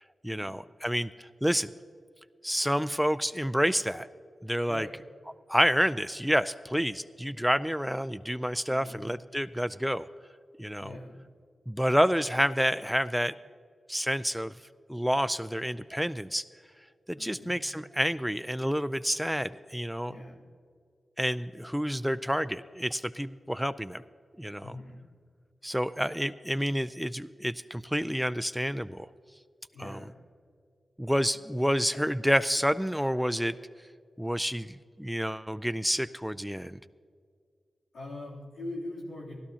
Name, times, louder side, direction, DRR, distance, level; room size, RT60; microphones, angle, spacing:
voice 1, 0.2-1.7 2.4-4.1 4.4-4.9 5.5-10.0 10.6-10.9 11.7-13.3 13.9-14.5 14.9-16.4 17.1-20.1 21.2-24.0 24.4-24.7 25.6-29.1 29.8-30.0 31.0-33.6 34.2-36.8, equal, ahead, 15 dB, 0.4 m, -29 dB
voice 2, 4.6-5.0 8.6-9.0 10.8-11.1 17.1-17.5 20.0-20.4 24.6-25.0 29.7-30.1 37.9-39.4, left 1 dB, 85° left, -5 dB, 3.1 m, -42 dB
17.0 x 13.5 x 2.8 m, 2.2 s
cardioid pair, 50°, 0 cm